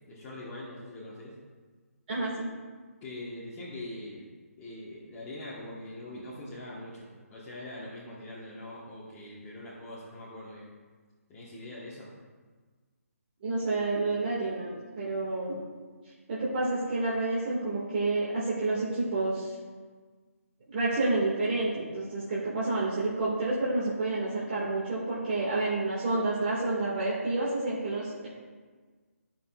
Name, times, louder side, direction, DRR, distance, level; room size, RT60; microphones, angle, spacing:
voice 1, 0.0-1.4 3.0-4.3 4.6-10.7 11.3-12.1, left 1 dB, 20° left, -9 dB, 1.3 m, -42 dB
voice 2, 2.1-2.5 13.4-15.6 16.3-19.5 20.7-28.3, right 2 dB, 40° right, -8 dB, 1.9 m, -29 dB
13.5 x 6.0 x 2.4 m, 1.4 s
figure-of-eight pair, 160°, 8 cm